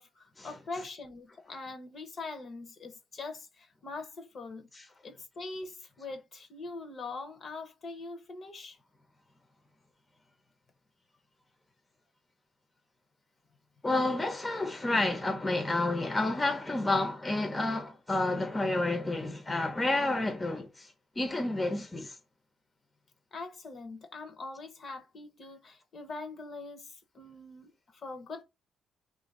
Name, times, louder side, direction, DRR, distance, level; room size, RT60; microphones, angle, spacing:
voice 1, 0.0-4.7 5.0-8.8 23.3-28.4, left 3 dB, 50° left, 0.8 m, -43 dB
voice 2, 13.8-22.2, left 2 dB, 20° left, 0.7 m, -30 dB
2.8 x 2.6 x 4.1 m
cardioid pair, 90°, 0 cm